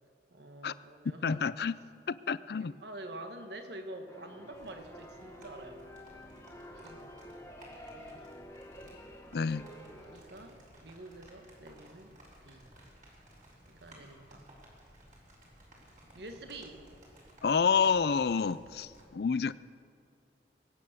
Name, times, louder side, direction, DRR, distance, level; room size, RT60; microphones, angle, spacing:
voice 1, 0.3-1.5 2.6-5.9 6.7-7.1 7.9-8.2 10.1-12.1 12.4-12.7 13.7-14.5 16.1-16.9, right 1 dB, 70° right, 6 dB, 1.4 m, -47 dB
voice 2, 1.2-1.7 2.1-2.7 9.3-9.6 17.4-19.5, left 6 dB, 60° left, 17 dB, 0.4 m, -29 dB
sound 1, 4.1-10.2, equal, 15° left, 1.5 m, -49 dB
sound 2, 4.5-19.0, equal, 45° right, 4.0 m, -57 dB
22.0 x 9.1 x 6.7 m, 2.3 s
head